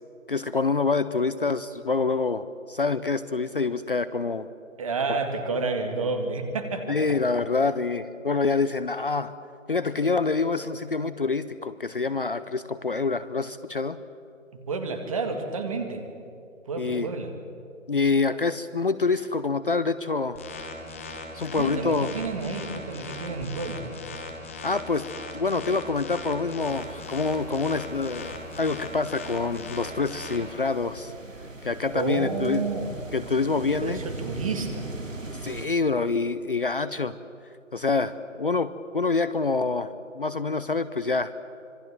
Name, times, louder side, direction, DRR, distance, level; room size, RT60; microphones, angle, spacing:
voice 1, 0.3-4.5 5.1-5.2 6.9-9.3 9.7-14.0 16.8-17.1 17.9-20.4 21.3-22.1 24.6-25.1 25.3-31.1 31.6-32.6 33.1-34.0 35.4-37.2 37.7-39.9 40.1-41.3, left 4 dB, 45° left, 14 dB, 0.7 m, -26 dB
voice 2, 4.8-7.0 14.7-16.0 16.7-17.3 21.5-23.8 31.9-32.9 33.8-34.9, right 4 dB, 25° right, 5 dB, 2.2 m, -30 dB
sound 1, 20.4-30.4, left 3 dB, 10° left, 1.0 m, -39 dB
sound 2, 26.6-35.7, right 2 dB, 70° right, 2.6 m, -40 dB
26.0 x 22.0 x 7.6 m, 2.5 s
figure-of-eight pair, 160°, 40 cm